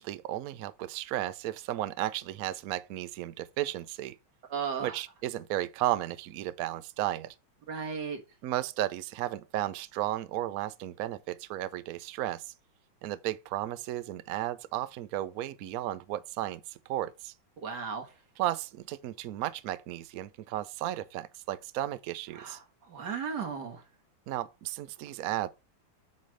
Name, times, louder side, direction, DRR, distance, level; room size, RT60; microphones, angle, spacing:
voice 1, 0.0-4.2 4.8-7.3 8.4-12.5 13.0-17.3 18.4-22.6 24.3-25.5, right 14 dB, 85° right, 0.7 m, -34 dB
voice 2, 4.5-5.0 7.7-8.2 17.6-18.1 22.3-23.8, right 6 dB, 60° right, 2.0 m, -35 dB
8.3 x 3.2 x 6.3 m
omnidirectional pair, 2.2 m